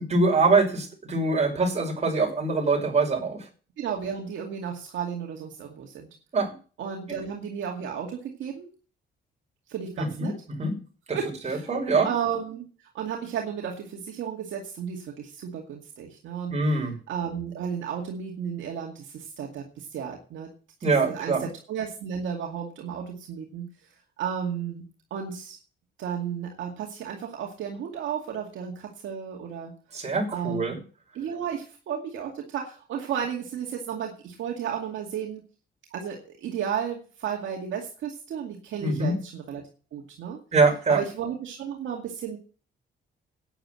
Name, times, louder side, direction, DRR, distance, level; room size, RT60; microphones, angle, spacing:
voice 1, 0.0-3.5 6.3-6.5 10.0-10.3 10.6-10.7 11.1-11.2 11.4-12.1 16.5-16.9 20.8-21.5 29.9-30.8 38.8-39.1 40.5-41.0, right 3 dB, 35° right, 0 dB, 6.1 m, -23 dB
voice 2, 3.8-6.1 6.8-8.7 9.7-10.3 11.1-11.7 12.0-12.6 12.9-16.5 17.1-20.5 20.8-23.7 24.2-24.8 25.1-25.6 26.0-29.7 30.3-30.8 31.1-35.4 35.9-39.6 39.9-40.4 40.9-42.4, right 8 dB, 75° right, 1 dB, 2.3 m, -33 dB
9.6 x 9.0 x 7.7 m, 0.39 s
cardioid pair, 90°, 20 cm